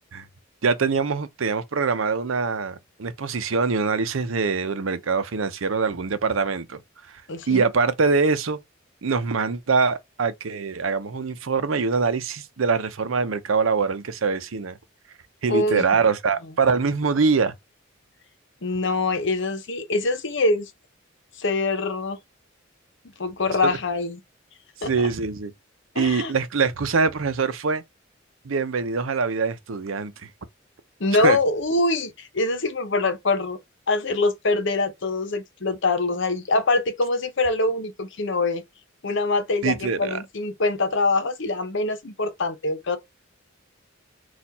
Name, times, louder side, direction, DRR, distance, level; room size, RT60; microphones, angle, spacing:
voice 1, 0.6-6.8 7.5-8.6 9.0-14.8 15.4-17.5 23.6-23.7 24.8-25.5 26.0-27.8 28.4-30.3 31.2-31.4 39.6-40.2, right 4 dB, 80° right, 0.7 m, -23 dB
voice 2, 7.3-7.7 15.5-15.8 18.6-20.7 21.4-22.2 23.2-24.2 24.8-24.9 25.9-26.3 31.0-33.6 33.9-38.6 39.0-43.0, left 2 dB, 65° left, 0.9 m, -24 dB
4.3 x 2.5 x 4.1 m
head